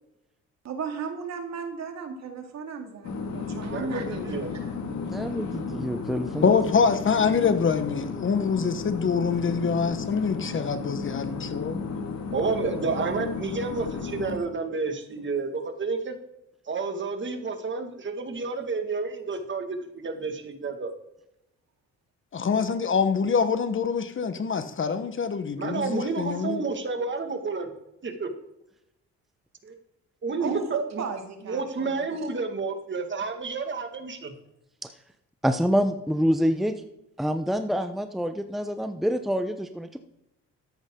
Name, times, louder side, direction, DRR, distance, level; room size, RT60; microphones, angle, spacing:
voice 1, 0.6-4.8 30.4-32.3, right 5 dB, 60° right, 2.3 m, -35 dB
sound 1, 3.0-14.4, left 5 dB, 65° left, 2.2 m, -34 dB
voice 2, 3.6-4.5 12.3-16.1 16.7-20.9 25.6-27.7 28.0-28.3 29.6-29.8 30.2-30.6 31.5-34.3, right 4 dB, 40° right, 2.0 m, -30 dB
voice 3, 4.9-6.5 35.4-36.7 37.2-40.0, equal, ahead, 0.8 m, -26 dB
voice 4, 6.4-11.8 22.3-26.6, left 5 dB, 40° left, 1.2 m, -25 dB
13.5 x 9.9 x 3.8 m
cardioid pair, 90°, 30 cm